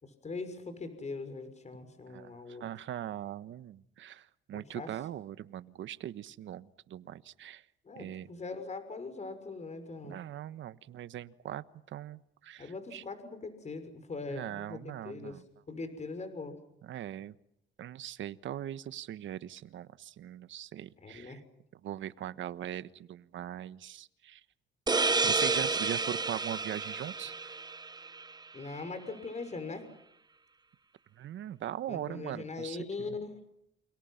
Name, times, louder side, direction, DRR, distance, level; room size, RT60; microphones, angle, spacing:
voice 1, 0.0-2.6 4.5-4.9 7.8-10.2 12.6-15.4 15.7-16.6 21.0-21.4 28.5-29.9 31.9-33.4, left 3 dB, 35° left, 9 dB, 6.3 m, -41 dB
voice 2, 2.6-7.6 7.9-8.3 10.0-13.0 14.3-15.4 16.8-17.3 17.8-21.4 21.8-24.4 25.2-27.5 31.2-33.2, right 11 dB, 75° right, 14 dB, 1.3 m, -41 dB
sound 1, 24.9-28.3, right 4 dB, 20° right, 1.0 m, -30 dB
29.5 x 28.5 x 5.9 m, 0.75 s
cardioid pair, 90°, 20 cm